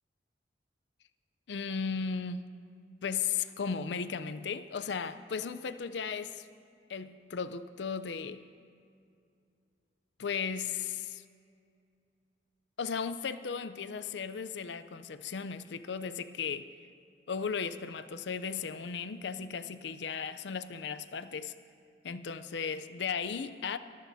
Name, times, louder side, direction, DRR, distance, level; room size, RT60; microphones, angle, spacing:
voice 1, 1.5-2.4 3.0-6.5 6.9-8.4 10.2-11.2 12.8-16.7 17.3-21.5 22.0-23.8, left 6 dB, 70° left, 13 dB, 0.5 m, -36 dB
22.5 x 14.5 x 2.7 m, 2.4 s
head